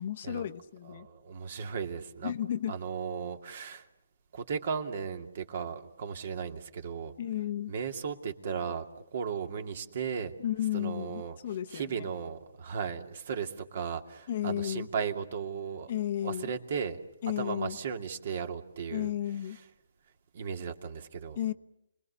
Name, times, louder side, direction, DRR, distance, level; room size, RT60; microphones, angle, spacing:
voice 1, 0.0-1.1 2.2-2.8 7.2-7.7 10.4-12.1 14.3-14.9 15.9-16.5 17.2-17.8 18.9-19.6 21.4-21.5, left 11 dB, 45° left, 9 dB, 1.0 m, -33 dB
voice 2, 0.8-2.3 2.7-3.9 4.3-7.1 7.7-10.3 10.7-11.4 11.7-15.9 16.2-17.0 17.4-19.1 20.3-21.4, right 6 dB, 50° right, 6 dB, 2.5 m, -36 dB
30.0 x 21.5 x 6.9 m, 0.87 s
hypercardioid pair, 155°, 0 cm